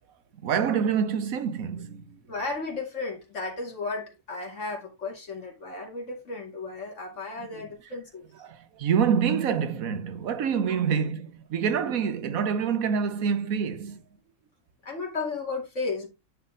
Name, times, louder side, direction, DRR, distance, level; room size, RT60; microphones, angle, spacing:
voice 1, 0.4-2.2 7.4-7.7 8.4-14.0, right 7 dB, 90° right, 1.3 m, -27 dB
voice 2, 2.3-8.2 10.7-10.8 14.8-16.1, left 3 dB, 60° left, 2.6 m, -34 dB
9.9 x 4.1 x 3.8 m
omnidirectional pair, 1.4 m